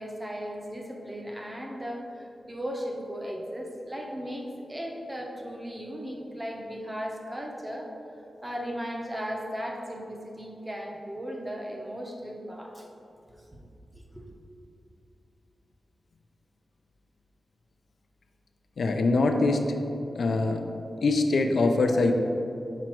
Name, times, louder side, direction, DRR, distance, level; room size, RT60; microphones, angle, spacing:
voice 1, 0.0-7.9 8.4-12.9 14.1-14.3, equal, 15° right, 0 dB, 0.8 m, -36 dB
voice 2, 18.8-19.7 20.2-20.6 21.0-22.1, left 3 dB, 65° left, 4 dB, 0.4 m, -23 dB
6.0 x 5.1 x 4.5 m, 2.8 s
wide cardioid pair, 155°, 0 cm